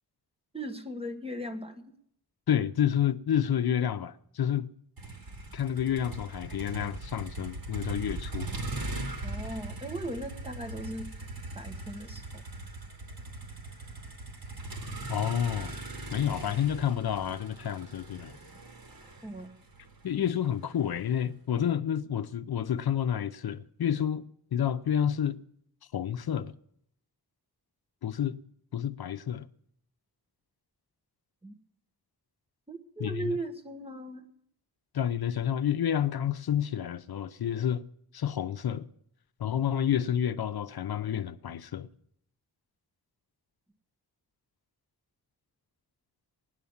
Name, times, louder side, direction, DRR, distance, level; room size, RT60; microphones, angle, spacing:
voice 1, 0.5-1.9 9.2-11.1 11.5-12.4 19.2-19.5 31.4-31.5 32.7-34.3, right 1 dB, 15° right, 1.3 m, -38 dB
voice 2, 2.5-4.7 5.5-8.5 15.1-15.8 16.1-18.4 20.0-24.2 24.5-25.4 25.9-26.5 28.0-28.4 28.7-29.5 33.0-33.3 34.9-37.8 38.1-38.9 39.4-41.9, left 9 dB, 70° left, 0.6 m, -29 dB
Motor vehicle (road), 5.0-21.1, right 2 dB, 65° right, 2.8 m, -40 dB
17.5 x 10.0 x 7.1 m
wide cardioid pair, 120°, 38 cm